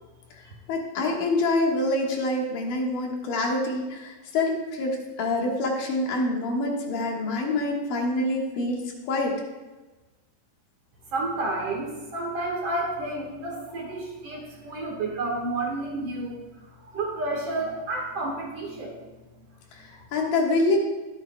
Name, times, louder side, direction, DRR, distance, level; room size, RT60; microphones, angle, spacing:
voice 1, 0.7-9.4 19.7-20.8, left 2 dB, 80° left, 0 dB, 3.2 m, -26 dB
voice 2, 11.1-19.0 19.9-20.0, right 2 dB, 50° right, -1 dB, 2.3 m, -31 dB
22.5 x 7.9 x 2.2 m, 1.2 s
omnidirectional pair, 3.8 m